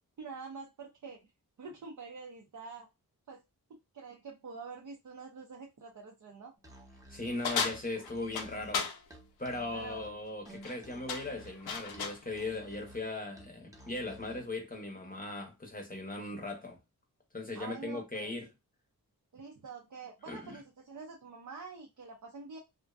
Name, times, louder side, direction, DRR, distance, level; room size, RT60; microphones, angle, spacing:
voice 1, 0.2-1.3 1.6-2.9 3.3-3.4 3.7-6.5 9.7-10.1 17.6-18.3 19.3-22.6, right 4 dB, 55° right, 0.5 m, -46 dB
Musical instrument, 6.6-14.5, right 1 dB, 10° right, 0.7 m, -54 dB
voice 2, 7.1-8.9 9.4-16.8 17.3-18.5 20.3-20.6, left 2 dB, 25° left, 0.7 m, -38 dB
sound 1, 7.4-9.0 10.5-10.8 11.1-12.2, left 5 dB, 80° left, 0.6 m, -35 dB
2.5 x 2.1 x 2.3 m
wide cardioid pair, 70°, 37 cm